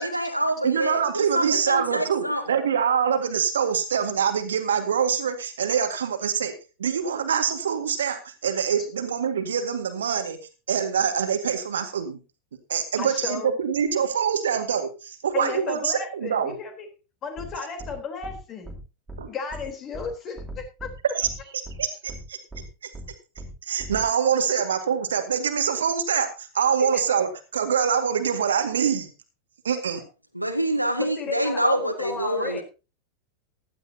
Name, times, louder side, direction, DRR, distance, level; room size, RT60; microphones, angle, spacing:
voice 1, 0.0-2.4 30.3-32.6, right 1 dB, 90° right, 7 dB, 1.6 m, -26 dB
voice 2, 0.6-6.5 6.8-10.4 10.7-12.2 12.7-16.5 19.2-19.3 21.1-21.3 21.8-22.4 22.8-22.9 23.6-29.1 29.6-30.0, right 7 dB, 65° right, 8 dB, 1.9 m, -25 dB
voice 3, 13.0-13.6 15.3-16.9 17.2-18.8 19.3-20.9 26.8-27.0 29.7-29.8 31.0-32.6, left 5 dB, 30° left, 5 dB, 3.7 m, -34 dB
sound 1, 17.4-17.5 17.8-17.9 18.2-18.4 18.6-18.8 19.1-19.2 19.5-19.6 19.9-20.1 20.4-20.9 21.2-21.3 21.6-21.8 22.1-22.2 22.5-22.6 22.9-23.1 23.4-23.5 23.8-24.0, right 1 dB, 10° right, 3.2 m, -38 dB
15.5 x 12.5 x 2.8 m, 0.31 s
figure-of-eight pair, 90°, 0 cm